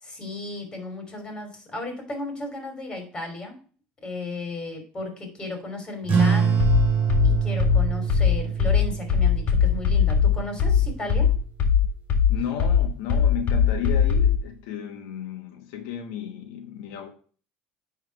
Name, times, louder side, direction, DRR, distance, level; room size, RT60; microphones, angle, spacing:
voice 1, 0.0-3.6 4.0-6.6 7.2-11.3, left 2 dB, 20° left, 2.9 m, -34 dB
sound 1, 6.0-11.1, right 6 dB, 35° right, 3.0 m, -26 dB
sound 2, 6.6-14.4, left 7 dB, 45° left, 1.9 m, -20 dB
voice 2, 12.3-17.1, left 9 dB, 90° left, 1.3 m, -33 dB
9.8 x 3.6 x 4.6 m
cardioid pair, 140°, 4 cm